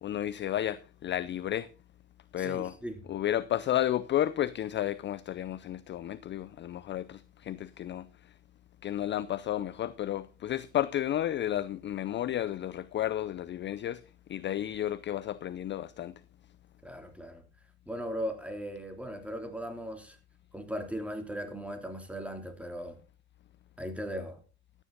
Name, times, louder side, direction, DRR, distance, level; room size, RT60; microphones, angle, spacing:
voice 1, 0.0-1.7 2.3-2.8 3.1-8.1 8.8-14.0 14.3-16.1, left 12 dB, 30° left, 0.5 m, -32 dB
voice 2, 2.4-3.0 16.8-17.4 17.9-20.2 20.5-23.0 23.8-24.4, equal, 5° right, 3.1 m, -38 dB
13.5 x 9.9 x 3.9 m
hypercardioid pair, 80°, 36 cm